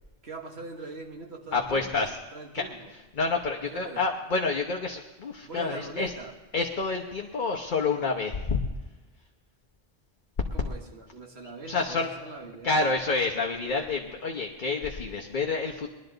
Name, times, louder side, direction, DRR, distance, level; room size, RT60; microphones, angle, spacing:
voice 1, 0.2-2.0 2.3-2.9 3.7-4.0 5.4-6.3 10.5-12.8, right 2 dB, 90° right, 2 dB, 1.9 m, -41 dB
voice 2, 1.5-2.1 2.5-2.6 3.2-6.1 6.5-8.6 11.7-12.1 12.6-15.9, left 3 dB, 50° left, 1 dB, 1.1 m, -28 dB
20.5 x 12.0 x 3.9 m, 1.2 s
omnidirectional pair, 1.1 m